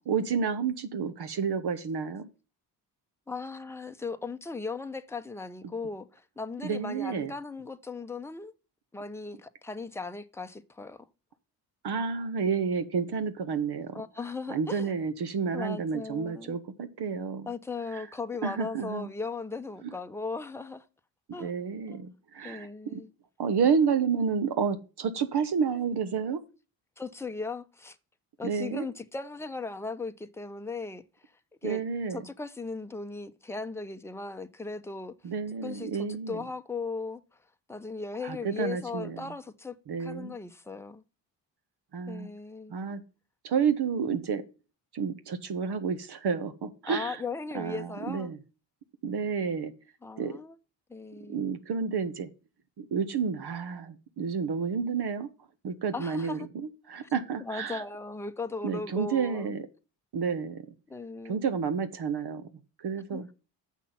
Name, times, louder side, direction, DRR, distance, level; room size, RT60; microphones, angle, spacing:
voice 1, 0.1-2.3 6.6-7.3 11.8-13.9 14.5-17.5 17.9-18.0 18.4-19.1 21.4-23.0 23.4-26.4 28.4-28.9 31.6-32.2 35.2-36.4 38.2-39.3 39.9-40.3 41.9-42.3 42.7-43.0 43.4-44.4 44.9-47.2 47.5-48.4 49.0-49.7 50.2-50.4 51.3-52.3 52.8-55.3 55.6-57.8 58.6-59.7 60.1-60.6 61.2-62.4 62.8-63.3, right 6 dB, 50° right, 1.1 m, -30 dB
voice 2, 3.3-8.5 8.9-11.1 13.9-14.9 15.5-16.6 17.5-20.8 21.3-21.5 21.9-22.0 22.4-23.1 27.0-28.0 28.4-31.0 31.6-31.8 32.1-35.1 35.6-37.2 37.7-41.0 42.1-42.7 46.9-48.3 50.0-50.6 50.9-51.5 55.9-56.5 57.0-57.1 57.4-59.5 60.9-61.4 63.1-63.3, left 3 dB, 5° left, 0.8 m, -37 dB
7.3 x 6.0 x 5.8 m
hypercardioid pair, 55°, 49 cm